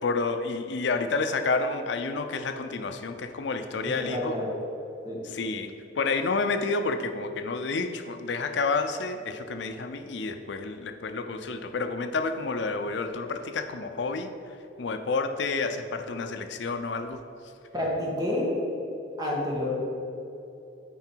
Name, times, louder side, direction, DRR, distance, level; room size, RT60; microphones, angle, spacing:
voice 1, 0.0-4.4 5.2-14.3 14.8-17.2, left 4 dB, 70° left, 8 dB, 0.5 m, -29 dB
voice 2, 3.8-4.5 5.0-5.2 17.7-18.5 19.2-19.7, left 1 dB, 20° right, -4 dB, 1.7 m, -29 dB
9.3 x 4.9 x 4.5 m, 2.9 s
head